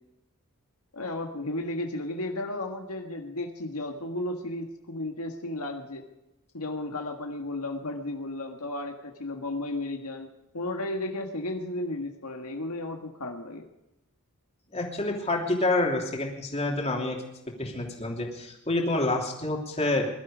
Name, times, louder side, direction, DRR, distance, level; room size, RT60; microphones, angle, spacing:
voice 1, 0.9-6.1 6.5-10.3 10.5-13.7, left 2 dB, 80° left, 3 dB, 1.7 m, -34 dB
voice 2, 14.7-17.2 17.6-20.1, left 2 dB, 30° left, 0 dB, 3.0 m, -28 dB
21.5 x 12.5 x 5.0 m, 0.92 s
head